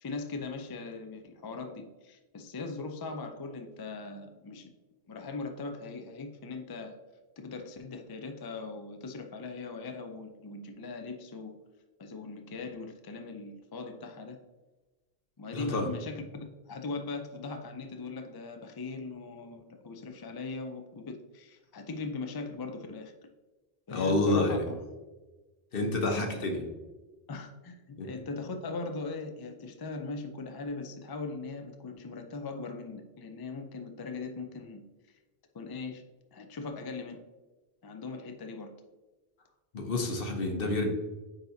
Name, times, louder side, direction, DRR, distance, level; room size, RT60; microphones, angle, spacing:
voice 1, 0.0-4.7 5.1-7.0 7.4-11.6 12.0-14.4 15.4-23.1 23.9-24.8 26.0-26.6 27.3-34.8 35.5-36.0 36.3-37.2 37.8-38.7, left 3 dB, 35° left, 5 dB, 0.3 m, -40 dB
voice 2, 15.5-15.9 23.9-24.6 25.7-26.6 28.0-28.1 39.7-40.9, left 2 dB, 60° left, 3 dB, 1.1 m, -28 dB
8.9 x 4.0 x 2.7 m, 1.2 s
omnidirectional pair, 1.1 m